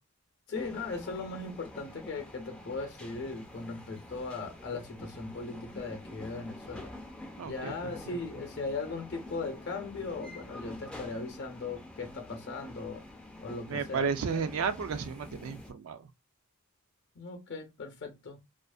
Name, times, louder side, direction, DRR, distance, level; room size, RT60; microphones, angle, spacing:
voice 1, 0.5-6.9 7.4-13.0 13.4-14.4 17.2-18.4, left 3 dB, 50° left, 0.6 m, -38 dB
sound 1, 0.5-15.7, left 1 dB, 5° left, 0.3 m, -47 dB
voice 2, 7.4-7.7 8.1-8.2 13.7-16.1, right 5 dB, 65° right, 0.4 m, -33 dB
2.4 x 2.4 x 2.3 m
head